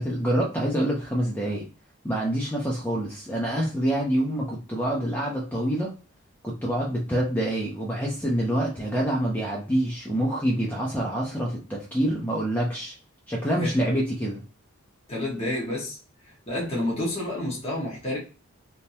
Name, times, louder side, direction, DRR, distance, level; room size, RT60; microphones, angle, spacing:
voice 1, 0.0-1.7 2.0-5.9 6.4-12.9 13.3-14.4, right 1 dB, 10° left, -3 dB, 0.6 m, -26 dB
voice 2, 15.1-16.0 16.3-18.2, left 1 dB, 30° left, -4 dB, 1.3 m, -29 dB
3.6 x 2.8 x 2.7 m, 0.35 s
head